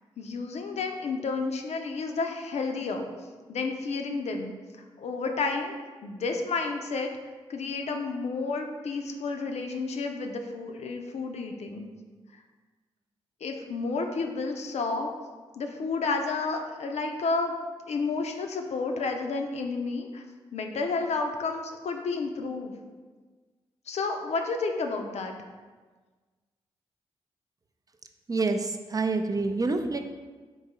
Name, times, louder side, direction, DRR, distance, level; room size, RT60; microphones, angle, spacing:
voice 1, 0.2-3.1 3.5-4.5 5.0-5.7 6.0-7.1 7.5-11.9 13.4-15.1 15.6-17.6 17.9-20.2 20.5-22.7 23.9-25.3, left 4 dB, 65° left, 4 dB, 0.5 m, -31 dB
voice 2, 28.3-30.0, right 3 dB, 30° right, 6 dB, 0.4 m, -27 dB
3.8 x 2.6 x 4.1 m, 1.4 s
supercardioid pair, 40°, 12 cm